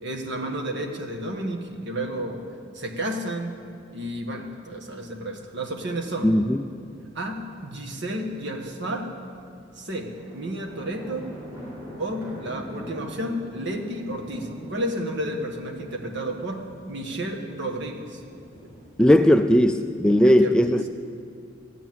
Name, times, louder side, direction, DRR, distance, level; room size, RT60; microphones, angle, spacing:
voice 1, 0.0-2.4 2.7-3.6 3.9-6.3 7.1-9.1 9.8-11.3 12.0-16.6 16.9-18.2 20.2-20.8, right 1 dB, 65° right, 3 dB, 1.6 m, -31 dB
voice 2, 6.2-6.6 19.0-20.9, equal, 5° left, 8 dB, 0.3 m, -18 dB
sound 1, 6.9-7.0 8.9-19.3, equal, 15° right, 3.9 m, -43 dB
14.5 x 9.1 x 7.7 m, 2.3 s
head